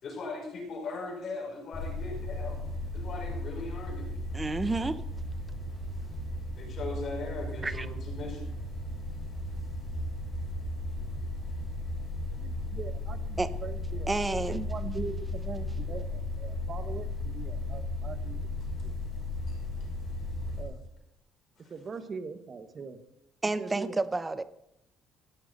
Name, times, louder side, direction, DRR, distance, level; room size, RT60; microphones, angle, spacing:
voice 1, 0.0-2.6 2.9-4.1 6.5-8.5 18.6-18.7 19.5-19.6 21.6-21.7, left 3 dB, 35° left, 0 dB, 5.0 m, -39 dB
sound 1, 1.7-20.6, left 1 dB, 20° left, 5.8 m, -35 dB
voice 2, 4.3-5.0 7.6-7.9 13.4-13.5 14.1-14.6 23.4-24.4, right 2 dB, 10° right, 13 dB, 0.6 m, -30 dB
voice 3, 12.3-18.5 18.8-18.9 19.5-19.6 20.6-20.8 21.7-23.0 23.6-24.0, right 4 dB, 25° right, 9 dB, 1.2 m, -41 dB
17.5 x 14.5 x 4.0 m, 0.82 s
cardioid pair, 175°, 0 cm